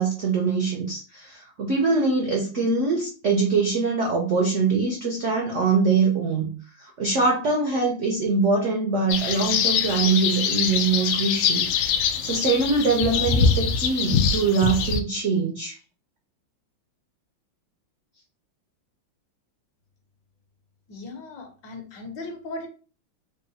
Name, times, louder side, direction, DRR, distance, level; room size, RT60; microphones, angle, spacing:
voice 1, 0.0-11.7 12.1-15.8, right 4 dB, 75° right, 0 dB, 0.6 m, -23 dB
sound 1, 9.1-15.0, left 6 dB, 85° left, 1.4 m, -23 dB
voice 2, 20.9-22.7, left 2 dB, 65° left, 4 dB, 1.4 m, -37 dB
3.8 x 2.0 x 4.0 m, 0.37 s
omnidirectional pair, 2.2 m